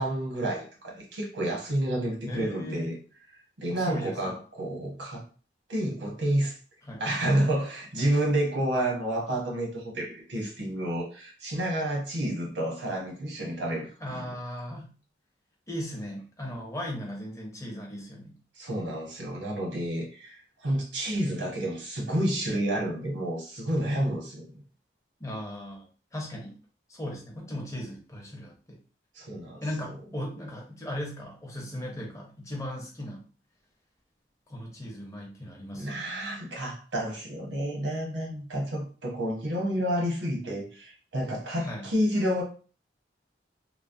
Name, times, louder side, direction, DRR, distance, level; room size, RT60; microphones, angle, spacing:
voice 1, 0.0-3.0 3.6-5.2 5.7-6.6 7.0-14.3 18.6-24.6 29.2-29.6 35.7-42.4, right 1 dB, 85° right, -1 dB, 1.0 m, -30 dB
voice 2, 2.3-3.0 3.7-4.4 6.9-7.0 14.0-14.9 15.7-18.4 25.2-26.5 26.9-28.8 29.6-33.2 34.5-36.0 41.6-41.9, equal, 15° left, -1 dB, 0.6 m, -37 dB
3.1 x 2.0 x 2.5 m, 0.38 s
head